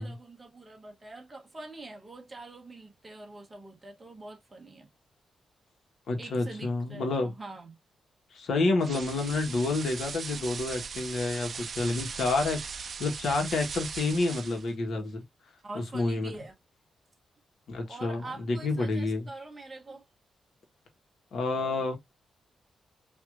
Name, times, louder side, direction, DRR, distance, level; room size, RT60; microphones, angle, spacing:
voice 1, 0.0-4.9 6.2-7.8 15.6-16.5 17.9-20.1, right 2 dB, 15° right, 1.1 m, -45 dB
voice 2, 6.1-7.3 8.3-15.2 15.7-16.3 17.7-19.3 21.3-22.0, left 3 dB, 65° left, 1.4 m, -29 dB
sound 1, 8.8-14.7, right 5 dB, 40° right, 0.5 m, -39 dB
4.7 x 2.8 x 2.6 m
wide cardioid pair, 170°, 0 cm